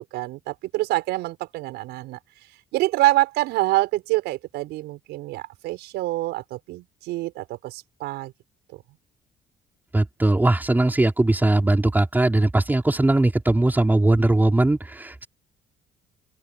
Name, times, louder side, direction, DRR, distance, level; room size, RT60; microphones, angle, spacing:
voice 1, 0.1-2.2 2.7-8.3, right 18 dB, 90° right, 5.9 m, -26 dB
voice 2, 9.9-15.3, right 2 dB, 10° right, 5.0 m, -20 dB
open air
cardioid pair, 110°, 17 cm